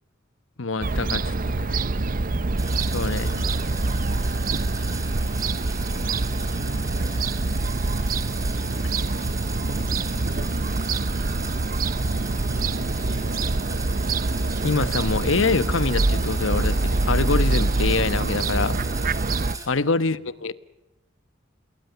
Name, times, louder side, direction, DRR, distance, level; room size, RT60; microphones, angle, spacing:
voice 1, 0.6-1.8 2.9-3.4 14.6-18.8 19.7-20.5, left 4 dB, 70° left, 1.2 m, -25 dB
Fowl / Gull seagull, 0.8-19.6, right 2 dB, 45° right, 0.8 m, -25 dB
sound 1, 2.6-19.7, right 3 dB, 15° right, 4.4 m, -38 dB
voice 2, 3.2-3.9 6.0-7.3 9.6-11.6 12.5-14.2, right 1 dB, 70° right, 7.3 m, -42 dB
28.5 x 21.5 x 7.0 m
head